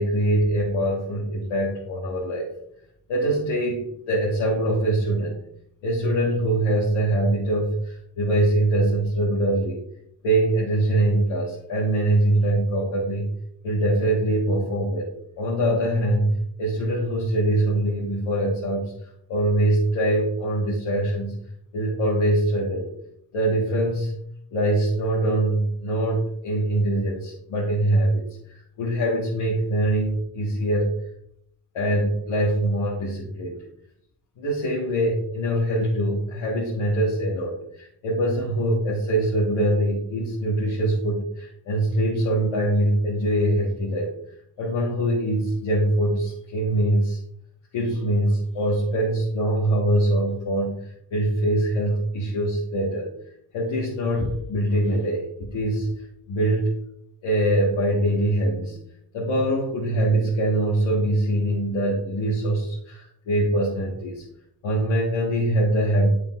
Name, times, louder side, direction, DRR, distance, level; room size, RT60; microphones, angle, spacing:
voice 1, 0.0-2.5 3.1-5.4 5.8-9.8 10.2-13.3 13.6-15.1 15.4-21.4 21.7-22.9 23.3-24.1 24.5-30.9 31.7-33.6 34.4-44.1 44.6-47.2 47.7-53.1 53.5-55.9 56.3-56.7 57.2-58.8 59.1-64.2 64.6-66.1, right 1 dB, 80° left, -6 dB, 1.5 m, -23 dB
7.3 x 6.4 x 2.4 m, 0.73 s
cardioid pair, 55°, 47 cm